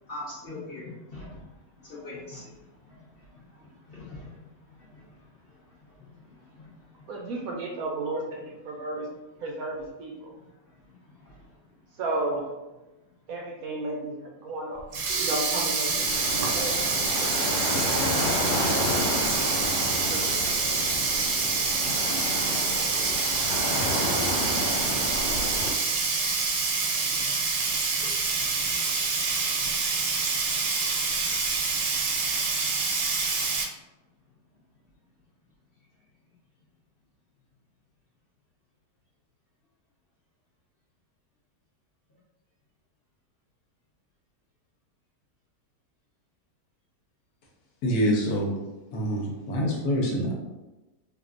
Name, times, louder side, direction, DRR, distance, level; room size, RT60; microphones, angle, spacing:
voice 1, 0.0-7.1 10.4-11.6 13.3-13.4 22.8-23.5 26.7-27.3 27.8-28.0 28.4-28.8 29.8-30.1 31.5-31.7 32.1-32.2, left 2 dB, 45° left, -7 dB, 0.8 m, -46 dB
voice 2, 7.1-9.1 9.4-10.4 12.0-12.5 13.3-14.8 15.2-16.8 17.2-18.0 18.4-19.1 20.1-20.7, right 2 dB, 70° right, -1 dB, 0.9 m, -34 dB
Sink (filling or washing), 14.8-33.6, right 4 dB, 85° right, 1.2 m, -26 dB
sound 1, 16.0-25.7, left 2 dB, 90° left, 1.3 m, -31 dB
voice 3, 47.8-48.5 48.9-50.3, equal, 70° left, -1 dB, 1.2 m, -26 dB
3.5 x 2.6 x 2.5 m, 1.1 s
omnidirectional pair, 1.8 m